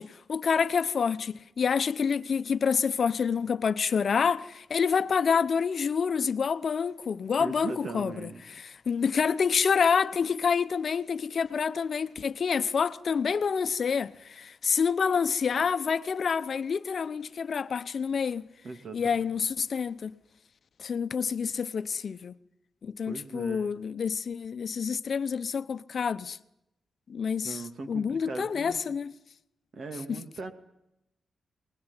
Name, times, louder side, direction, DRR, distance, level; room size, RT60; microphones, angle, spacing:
voice 1, 0.0-18.4 18.9-20.1 20.8-22.4 22.8-26.4 27.1-27.6 27.9-29.1 30.1-30.2, left 6 dB, 55° left, 0.9 m, -28 dB
voice 2, 7.4-8.4 18.6-19.2 23.1-23.7 27.4-28.8 29.7-30.5, right 3 dB, 55° right, 2.6 m, -39 dB
24.0 x 20.5 x 9.9 m
wide cardioid pair, 110°, 0 cm